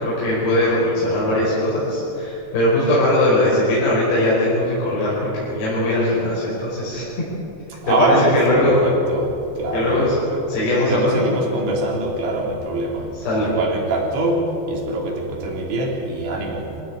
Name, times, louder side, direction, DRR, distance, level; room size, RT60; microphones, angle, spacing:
voice 1, 0.0-7.0 7.9-8.8 9.7-10.1 10.5-11.3 13.3-13.5, left 1 dB, 55° left, -8 dB, 7.4 m, -20 dB
voice 2, 7.7-10.4 10.9-13.1 13.4-16.8, right 2 dB, 65° right, -1 dB, 5.9 m, -23 dB
26.0 x 16.5 x 9.0 m, 2.9 s
omnidirectional pair, 5.6 m